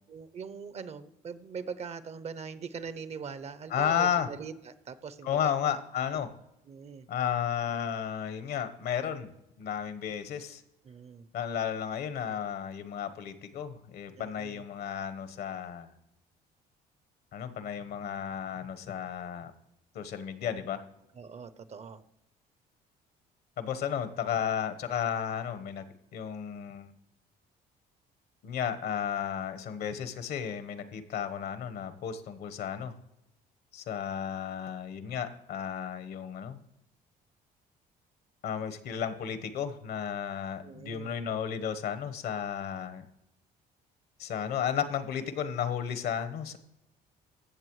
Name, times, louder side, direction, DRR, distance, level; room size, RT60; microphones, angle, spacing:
voice 1, 0.1-5.6 6.7-7.1 10.8-11.3 14.2-14.6 21.1-22.0 40.6-41.1, right 6 dB, 40° right, 15 dB, 0.6 m, -42 dB
voice 2, 3.7-4.3 5.2-6.3 7.1-9.3 9.6-10.6 11.3-15.9 17.3-19.5 19.9-20.8 23.6-25.8 26.1-26.9 28.4-32.9 33.7-36.6 38.4-43.0 44.2-46.6, left 8 dB, 70° left, 11 dB, 1.1 m, -33 dB
15.5 x 7.1 x 3.1 m, 0.85 s
cardioid pair, 110°, 17 cm